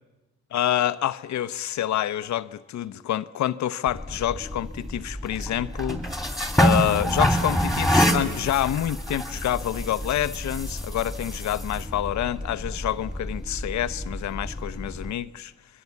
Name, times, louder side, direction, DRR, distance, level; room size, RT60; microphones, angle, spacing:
voice 1, 0.5-15.5, left 12 dB, 65° left, 0.9 m, -27 dB
sound 1, 3.9-15.1, equal, ahead, 2.9 m, -27 dB
27.0 x 22.5 x 8.4 m
cardioid pair, 90°, 30 cm